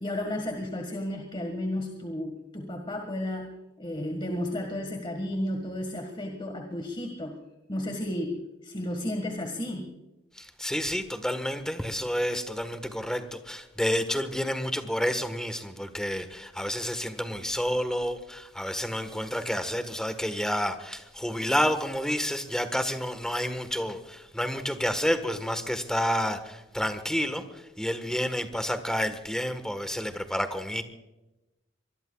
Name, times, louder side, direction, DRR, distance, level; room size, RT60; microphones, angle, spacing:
voice 1, 0.0-7.4 7.7-9.9, left 1 dB, 25° left, 1.8 m, -33 dB
voice 2, 10.4-30.8, equal, 5° left, 1.4 m, -30 dB
24.5 x 21.0 x 2.4 m
head